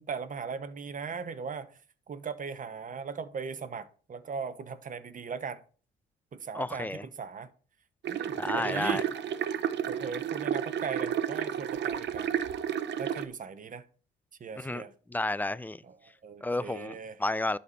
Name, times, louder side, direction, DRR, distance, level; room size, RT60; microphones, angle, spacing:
voice 1, 0.0-1.7 2.1-5.6 6.3-7.5 8.1-9.0 9.9-12.3 13.0-13.8 14.4-14.9 15.8-17.2, right 5 dB, 40° right, 1.0 m, -38 dB
voice 2, 6.5-7.0 8.4-9.0 14.6-14.8 15.1-15.8 16.4-17.6, left 2 dB, 10° left, 0.4 m, -31 dB
sound 1, 8.0-13.3, right 9 dB, 60° right, 0.8 m, -31 dB
11.5 x 4.3 x 5.4 m
cardioid pair, 90°, 20 cm